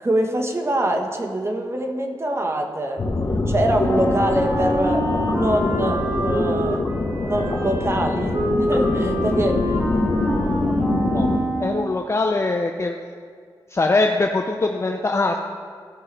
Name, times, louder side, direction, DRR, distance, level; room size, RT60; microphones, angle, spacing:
voice 1, 0.0-3.0 3.5-6.9 7.2-9.8, right 1 dB, 30° right, 3 dB, 1.2 m, -24 dB
sound 1, 3.0-11.4, left 2 dB, 50° left, 1.1 m, -24 dB
Wind instrument woodwind instrument, 3.8-11.9, equal, 45° right, 1.9 m, -27 dB
voice 2, 11.6-12.9 13.7-15.4, left 3 dB, 30° left, 3 dB, 0.5 m, -22 dB
15.5 x 5.5 x 3.3 m, 2.1 s
cardioid pair, 60°, 9 cm